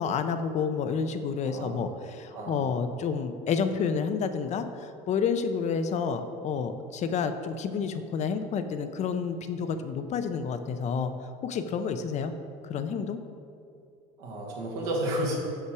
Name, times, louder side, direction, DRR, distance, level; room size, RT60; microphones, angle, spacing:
voice 1, 0.0-4.7 5.1-11.1 11.4-12.3 12.7-13.2, left 6 dB, 40° left, 9 dB, 0.5 m, -29 dB
voice 2, 1.4-1.9 2.3-2.7 14.2-15.4, right 1 dB, 85° right, -2 dB, 1.5 m, -32 dB
5.8 x 5.6 x 4.7 m, 2.5 s
supercardioid pair, 105°, 18 cm